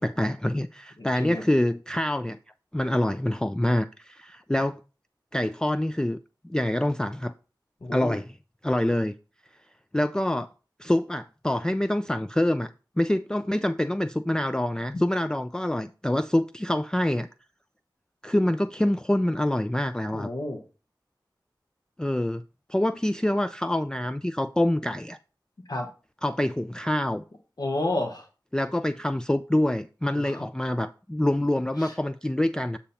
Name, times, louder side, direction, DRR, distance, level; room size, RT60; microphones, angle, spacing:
voice 1, 0.0-2.4 2.7-4.8 5.3-6.2 6.4-7.3 7.9-8.3 8.6-9.1 9.9-10.5 10.8-12.7 13.0-17.3 18.2-20.3 22.0-22.4 22.7-25.2 26.2-27.2 28.5-32.8, left 1 dB, 10° left, 0.3 m, -26 dB
voice 2, 1.0-1.4 7.8-8.2 14.9-15.0 20.1-20.6 25.7-25.9 27.6-28.3 30.2-30.4 31.8-31.9, left 2 dB, 60° left, 1.1 m, -31 dB
8.4 x 2.8 x 5.6 m
wide cardioid pair, 50°, 8 cm